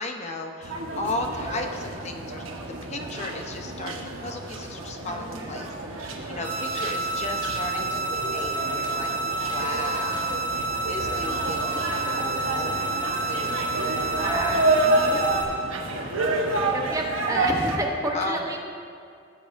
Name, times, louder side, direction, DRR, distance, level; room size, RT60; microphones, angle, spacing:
voice 1, 0.0-2.4 2.8-5.7 6.0-12.8 13.3-14.3 18.1-18.4, left 2 dB, 35° left, 3 dB, 0.8 m, -35 dB
sound 1, 0.6-17.8, right 2 dB, 80° right, 1.1 m, -29 dB
voice 2, 5.0-5.6 14.2-15.2 16.5-18.6, right 1 dB, 15° right, 0 dB, 0.9 m, -31 dB
sound 2, 6.4-15.4, right 3 dB, 35° right, 1.1 m, -29 dB
17.0 x 7.6 x 2.6 m, 2.3 s
head